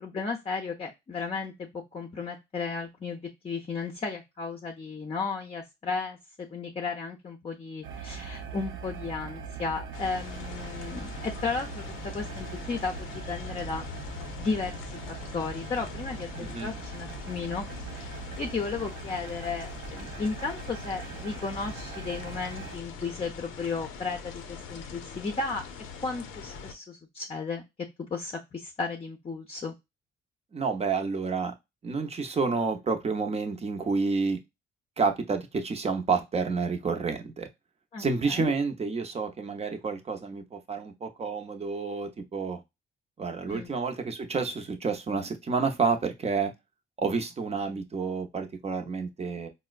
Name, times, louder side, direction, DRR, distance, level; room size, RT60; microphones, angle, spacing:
voice 1, 0.0-13.9 14.2-14.8 15.3-25.7 26.0-27.6 28.1-29.7 37.9-38.5 43.5-43.7, left 4 dB, 30° left, 3 dB, 0.6 m, -34 dB
sound 1, 7.8-22.8, right 5 dB, 80° right, 0.6 m, -41 dB
sound 2, 9.9-26.7, left 5 dB, 90° left, 0.6 m, -42 dB
voice 2, 16.4-16.7 30.5-31.5 31.8-34.4 35.0-37.5 38.0-42.6 43.2-46.5 47.0-49.5, right 4 dB, 30° right, 5 dB, 0.7 m, -29 dB
4.2 x 2.1 x 2.3 m, 0.21 s
cardioid pair, 90°, 20 cm